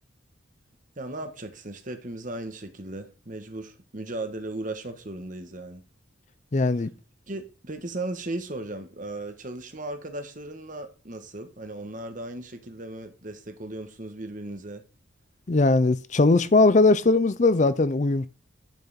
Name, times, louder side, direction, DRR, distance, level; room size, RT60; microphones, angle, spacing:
voice 1, 1.0-5.8 7.3-14.8, right 2 dB, 40° right, 1.3 m, -36 dB
voice 2, 6.5-6.9 15.5-18.3, left 3 dB, 40° left, 0.5 m, -20 dB
10.5 x 5.6 x 4.2 m
head